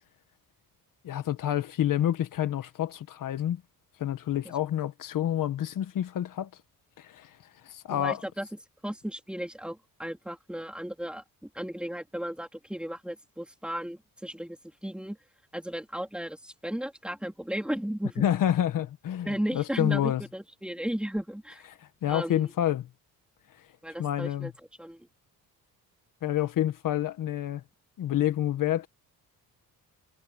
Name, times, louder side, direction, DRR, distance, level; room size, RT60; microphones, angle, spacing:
voice 1, 1.0-3.6 4.0-6.5 7.0-7.3 7.6-8.2 18.2-20.2 21.8-22.9 24.0-24.5 26.2-27.6 28.0-28.9, left 11 dB, 65° left, 1.4 m, -28 dB
voice 2, 7.9-8.5 8.8-11.2 11.5-15.2 15.5-18.2 19.2-21.6 22.1-22.5 23.8-24.5 24.8-25.1, equal, 5° right, 3.4 m, -35 dB
cardioid pair, 155°, 35 cm